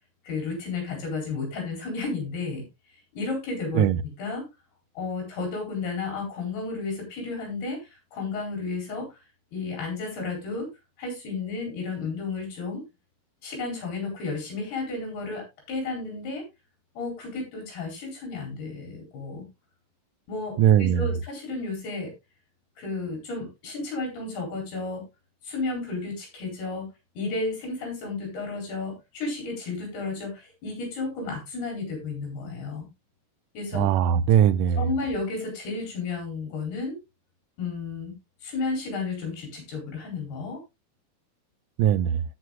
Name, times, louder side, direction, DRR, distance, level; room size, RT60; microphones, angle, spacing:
voice 1, 0.3-2.7 3.1-4.5 5.0-7.8 8.1-9.2 9.5-10.7 11.0-12.8 13.4-16.4 17.0-19.5 20.3-22.1 22.8-25.0 25.4-26.9 27.2-32.9 33.5-33.9 34.8-37.0 37.6-38.1 38.4-40.6, left 3 dB, 75° left, 6.2 m, -32 dB
voice 2, 20.6-21.1 33.7-34.8 41.8-42.2, right 9 dB, 85° right, 1.8 m, -20 dB
17.5 x 6.2 x 2.4 m
omnidirectional pair, 4.6 m